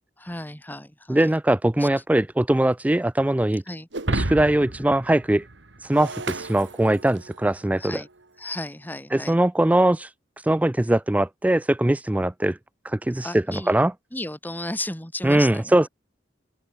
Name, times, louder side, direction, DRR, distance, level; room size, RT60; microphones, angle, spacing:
voice 1, 0.2-1.3 1.8-1.9 3.7-3.9 7.8-8.1 8.4-9.4 13.2-13.7 14.1-15.9, left 1 dB, 10° left, 4.5 m, -34 dB
voice 2, 1.1-3.6 4.1-5.5 5.8-8.0 9.1-12.6 12.8-13.9 15.2-15.9, right 1 dB, 10° right, 0.3 m, -21 dB
Shatter, 3.9-7.4, right 2 dB, 85° right, 2.4 m, -31 dB
open air
head